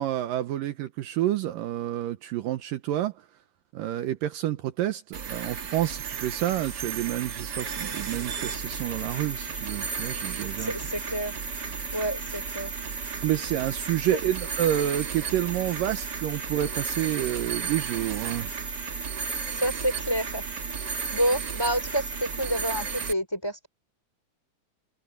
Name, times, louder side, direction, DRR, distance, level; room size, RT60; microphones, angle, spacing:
voice 1, 0.0-3.1 3.7-10.7 13.2-18.5, right 13 dB, 75° right, 2.5 m, -29 dB
sound 1, 5.1-23.1, right 5 dB, 45° right, 1.4 m, -33 dB
voice 2, 10.6-11.3 11.9-12.7 14.1-14.2 19.5-20.5 20.8-23.7, right 1 dB, 5° left, 4.5 m, -29 dB
omnidirectional pair, 4.2 m